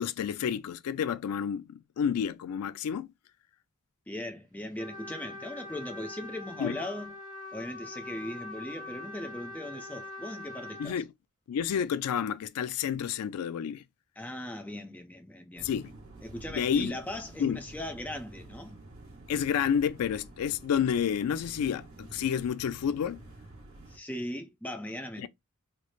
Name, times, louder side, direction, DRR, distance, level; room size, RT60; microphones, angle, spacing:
voice 1, 0.0-3.1 6.6-6.8 10.8-11.1 11.5-13.8 15.6-15.9 16.5-17.0 17.4-17.6 19.3-23.2 25.2-25.3, left 8 dB, 80° left, 0.3 m, -30 dB
voice 2, 4.1-7.1 7.5-11.0 14.2-15.7 16.2-18.8 23.9-25.3, left 1 dB, 5° left, 0.5 m, -39 dB
Trumpet, 4.8-11.0, left 2 dB, 35° right, 1.2 m, -43 dB
sound 1, 15.5-24.0, right 2 dB, 65° right, 1.4 m, -49 dB
3.1 x 2.0 x 4.1 m
head